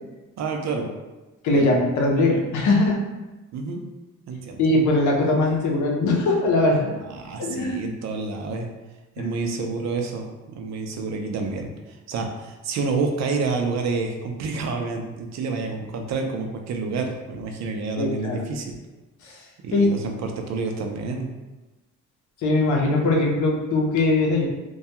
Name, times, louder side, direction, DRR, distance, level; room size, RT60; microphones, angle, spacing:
voice 1, 0.4-0.9 1.5-1.7 3.5-3.8 4.3-4.6 7.0-8.7 9.2-18.7 19.6-21.3, right 4 dB, 65° right, 3 dB, 0.5 m, -29 dB
voice 2, 1.4-3.0 4.6-6.9 7.4-7.8 9.2-9.3 18.0-18.4 19.2-19.4 19.7-19.9 22.4-24.5, left 2 dB, 75° left, -1 dB, 0.7 m, -21 dB
2.3 x 2.2 x 2.8 m, 1.1 s
cardioid pair, 90°, 30 cm